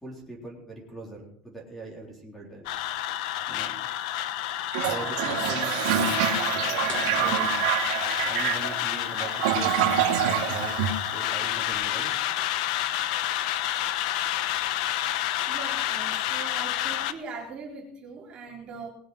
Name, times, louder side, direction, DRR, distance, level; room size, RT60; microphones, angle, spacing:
voice 1, 0.0-2.7 3.5-3.7 4.9-7.5 8.2-10.7 11.1-12.1, right 2 dB, 5° left, -1 dB, 3.8 m, -41 dB
sound 1, 2.7-17.1, left 13 dB, 60° left, 1.0 m, -29 dB
Toilet flush, 4.7-11.6, right 10 dB, 65° right, 2.1 m, -27 dB
sound 2, 6.9-8.6, left 3 dB, 30° left, 3.9 m, -43 dB
voice 2, 15.5-18.9, right 4 dB, 25° right, -3 dB, 3.8 m, -40 dB
20.5 x 7.8 x 6.4 m, 0.65 s
supercardioid pair, 170°, 4 cm